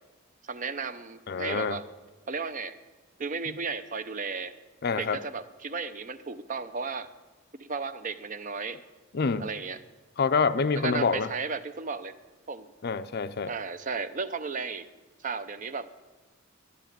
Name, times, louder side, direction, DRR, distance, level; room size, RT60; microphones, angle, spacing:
voice 1, 0.4-1.8 2.3-2.7 3.2-4.5 5.0-7.1 7.5-8.8 9.4-9.8 10.8-12.1 12.5-12.7 13.5-14.9 15.2-16.0, right 4 dB, 35° right, 12 dB, 0.6 m, -34 dB
voice 2, 1.3-1.8 4.8-5.2 9.1-9.5 10.2-11.3 12.8-13.5, left 5 dB, 50° left, 13 dB, 0.5 m, -26 dB
11.0 x 11.0 x 9.2 m, 1.2 s
head